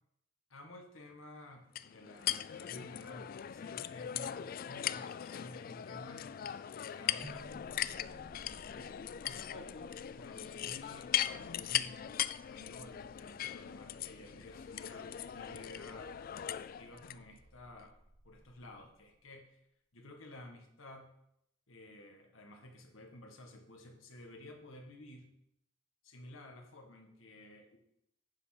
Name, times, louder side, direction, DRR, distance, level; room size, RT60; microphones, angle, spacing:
voice 1, 0.5-6.2 6.7-8.0 8.5-16.1 16.8-18.0 18.2-19.6 19.9-21.1 21.7-25.3 26.0-27.8, left 1 dB, 85° left, 3 dB, 1.7 m, -53 dB
sound 1, 1.8-17.2, left 11 dB, 45° left, 0.3 m, -39 dB
sound 2, 7.2-19.3, right 2 dB, 20° right, 0.5 m, -59 dB
9.6 x 5.2 x 5.9 m, 0.78 s
head